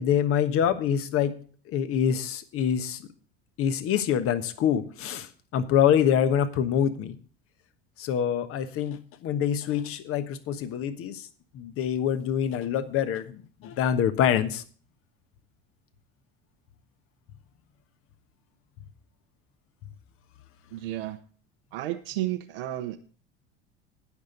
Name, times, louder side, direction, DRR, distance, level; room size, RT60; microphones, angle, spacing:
voice 1, 0.0-1.3 1.7-3.0 3.6-7.1 8.0-11.3 11.5-14.6, left 9 dB, 45° left, 11 dB, 1.2 m, -25 dB
voice 2, 20.7-21.2 21.7-23.0, right 14 dB, 60° right, 6 dB, 1.0 m, -32 dB
19.5 x 6.6 x 3.9 m, 0.42 s
figure-of-eight pair, 70°, 32 cm